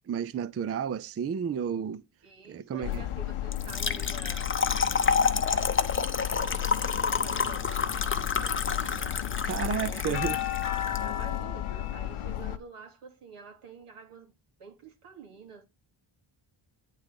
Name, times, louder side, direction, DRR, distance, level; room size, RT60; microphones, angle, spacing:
voice 1, 0.1-2.0 2.5-3.0 9.4-10.4, right 7 dB, 30° right, 0.4 m, -31 dB
voice 2, 2.2-9.1 9.8-14.3 14.6-15.7, right 5 dB, 90° right, 2.6 m, -48 dB
sound 1, 2.8-12.6, left 12 dB, 80° left, 0.9 m, -33 dB
Trickle dribble / Fill (with liquid), 3.5-11.0, left 5 dB, 25° left, 0.7 m, -29 dB
9.3 x 4.1 x 5.2 m
wide cardioid pair, 140°, 50 cm